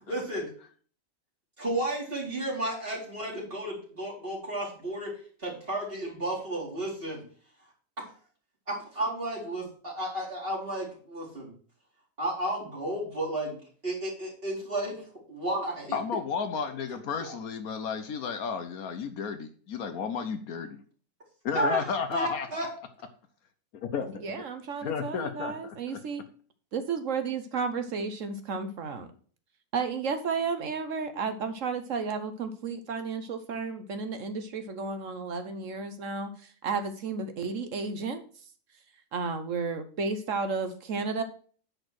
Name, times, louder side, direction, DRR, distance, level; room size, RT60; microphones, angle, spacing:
voice 1, 0.1-0.5 1.6-5.1 5.4-7.2 8.7-11.5 12.2-13.6 13.8-14.9 15.3-16.0 17.2-17.3 21.5-22.7, right 1 dB, 40° right, -2 dB, 3.3 m, -32 dB
voice 2, 15.9-20.8 21.4-22.5 23.7-24.2 24.8-26.0, left 6 dB, 75° left, 9 dB, 1.3 m, -33 dB
voice 3, 24.2-26.2 26.7-29.1 29.7-38.2 39.1-41.2, right 5 dB, 60° right, 9 dB, 1.2 m, -32 dB
9.6 x 4.5 x 6.2 m, 0.43 s
omnidirectional pair, 1.6 m